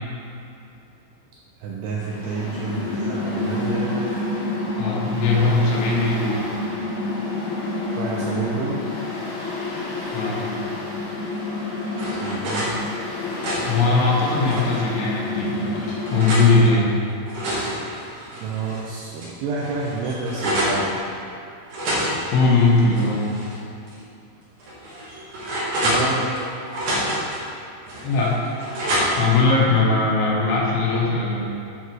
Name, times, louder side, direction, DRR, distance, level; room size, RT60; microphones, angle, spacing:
voice 1, 1.6-4.2 8.0-8.8 10.0-10.2 12.1-12.7 18.4-20.9 25.8-26.3, right 3 dB, 80° right, -4 dB, 2.4 m, -29 dB
Mechanical fan, 1.9-16.8, left 2 dB, 55° left, 2.3 m, -29 dB
voice 2, 4.7-6.5 10.1-10.5 13.7-16.9 22.3-23.3 28.0-28.5 29.2-31.5, left 3 dB, 80° left, -4 dB, 3.6 m, -20 dB
sound 1, 11.4-12.7 13.2-14.8 15.4-16.5 17.1-18.8 19.2-19.3 19.6-20.8 21.7-23.5 23.9-24.0 24.6-26.4 26.7-27.4 27.9-29.4, equal, 55° right, 3.3 m, -28 dB
10.5 x 4.1 x 4.7 m, 2.7 s
omnidirectional pair, 5.5 m